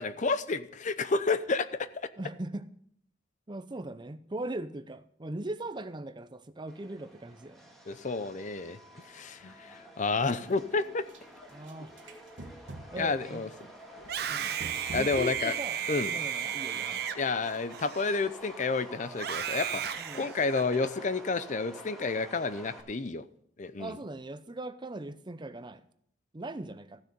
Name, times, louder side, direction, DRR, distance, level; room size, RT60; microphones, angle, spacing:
voice 1, 0.0-1.9 7.9-8.8 9.1-11.0 13.0-13.5 14.9-15.5 15.9-16.1 17.2-23.2 23.6-23.9, left 4 dB, 40° left, 0.6 m, -30 dB
voice 2, 2.2-2.7 3.5-7.6 9.4-9.5 11.5-11.9 12.9-13.4 14.3-14.6 14.9-17.2 20.0-20.3 23.8-25.8 26.3-27.0, right 2 dB, 25° right, 0.6 m, -40 dB
Subway metro underground, 6.7-22.8, equal, ahead, 2.2 m, -49 dB
sound 1, 10.3-11.2 11.5-13.2 13.6-15.5 16.0-16.1 16.5-16.8 17.1-17.7 18.0-18.1 18.5-18.6 18.9-19.1, right 2 dB, 90° right, 1.5 m, -47 dB
Screaming, 14.0-18.5 19.1-20.9, right 9 dB, 60° right, 0.7 m, -34 dB
14.5 x 6.5 x 6.8 m
head